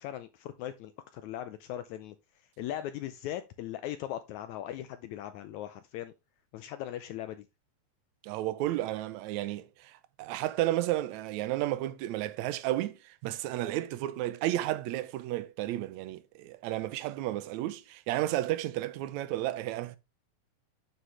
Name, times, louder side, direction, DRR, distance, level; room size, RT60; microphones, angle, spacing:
voice 1, 0.0-2.2 2.6-6.1 6.5-7.5, left 12 dB, 80° left, 1.7 m, -39 dB
voice 2, 8.2-20.0, right 15 dB, 75° right, 1.8 m, -32 dB
9.5 x 6.2 x 3.2 m
omnidirectional pair, 3.9 m